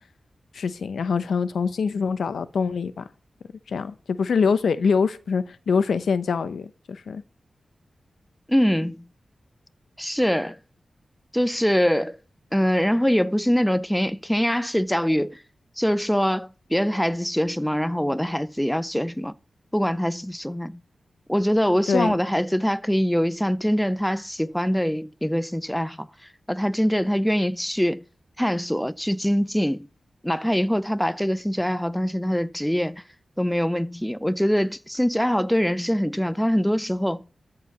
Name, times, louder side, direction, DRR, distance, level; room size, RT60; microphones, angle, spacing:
voice 1, 0.5-3.0 3.7-7.2 21.9-22.1, left 5 dB, 90° left, 0.8 m, -24 dB
voice 2, 8.5-9.0 10.0-10.6 11.3-12.2 12.5-15.4 15.8-19.3 19.7-20.8 21.3-26.1 26.5-28.0 28.4-29.9 30.2-33.0 33.4-37.2, equal, 5° left, 0.5 m, -23 dB
13.5 x 4.8 x 7.1 m
cardioid pair, 70°, 0 cm